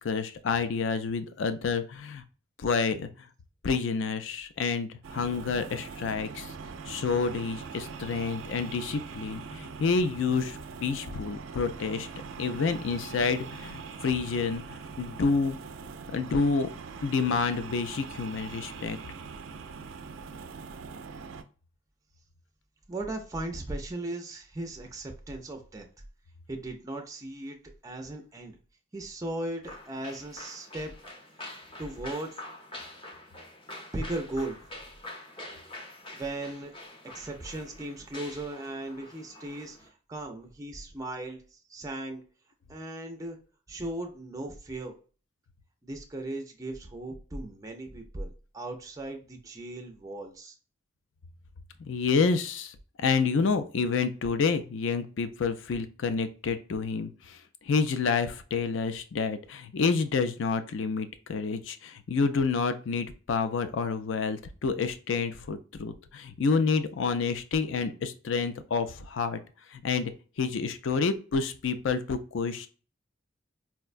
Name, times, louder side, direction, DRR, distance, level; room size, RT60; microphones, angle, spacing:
voice 1, 0.0-2.2 2.6-3.3 3.6-6.5 6.9-12.1 12.4-15.6 16.1-16.7 17.0-19.0 51.8-69.4 69.7-70.1 70.4-72.7, left 5 dB, 70° left, 10 dB, 0.4 m, -29 dB
sound 1, 5.0-21.4, right 5 dB, 90° right, 0.4 m, -42 dB
voice 2, 22.9-25.9 26.5-27.6 27.8-28.6 28.9-30.9 31.8-32.3 33.9-34.7 36.1-36.7 37.1-42.2 42.7-43.4 43.7-45.0 45.8-50.6, right 1 dB, 15° right, 3 dB, 0.4 m, -37 dB
sound 2, 29.6-39.9, left 1 dB, 25° left, 0.7 m, -46 dB
4.5 x 2.1 x 2.4 m, 0.37 s
head